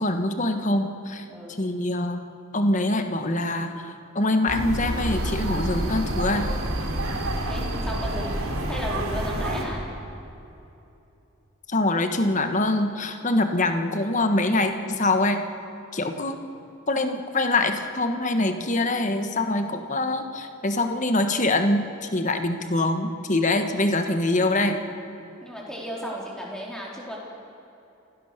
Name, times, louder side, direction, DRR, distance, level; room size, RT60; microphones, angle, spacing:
voice 1, 0.0-1.2 1.6-2.2 2.5-6.5 11.7-15.4 15.9-16.4 16.9-24.8, left 2 dB, 35° left, 7 dB, 1.4 m, -24 dB
sound 1, 4.5-9.6, right 1 dB, 85° right, 3.2 m, -28 dB
voice 2, 6.9-8.4 8.7-9.8 25.4-27.2, equal, 5° left, -3 dB, 3.8 m, -34 dB
27.5 x 16.5 x 6.8 m, 2.9 s
head